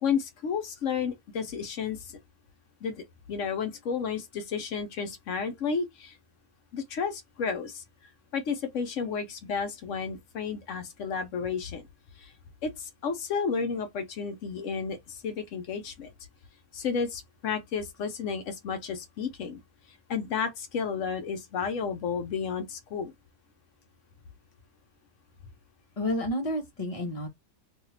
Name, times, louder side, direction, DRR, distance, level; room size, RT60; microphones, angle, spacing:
voice 1, 0.0-2.2 2.8-6.2 6.7-7.8 8.3-11.8 12.2-12.3 12.6-16.1 16.7-19.6 20.1-23.1, left 6 dB, 65° left, 0.9 m, -32 dB
voice 2, 26.0-27.3, left 1 dB, 30° left, 0.8 m, -30 dB
2.8 x 2.3 x 3.1 m
omnidirectional pair, 1.5 m